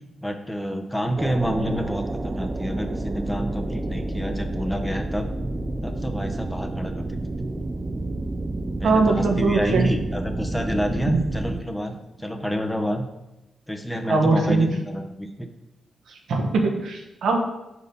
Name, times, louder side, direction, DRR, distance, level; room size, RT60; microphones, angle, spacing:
voice 1, 0.2-5.3 5.8-7.2 8.8-13.1 13.7-15.5, equal, 10° left, 4 dB, 1.0 m, -28 dB
sound 1, 1.2-11.6, right 2 dB, 35° right, 0.6 m, -30 dB
voice 2, 8.8-9.9 11.1-11.2 14.1-14.7 16.3-17.4, right 3 dB, 75° right, 2 dB, 1.1 m, -21 dB
5.1 x 4.7 x 5.4 m, 0.96 s
supercardioid pair, 45°, 0 cm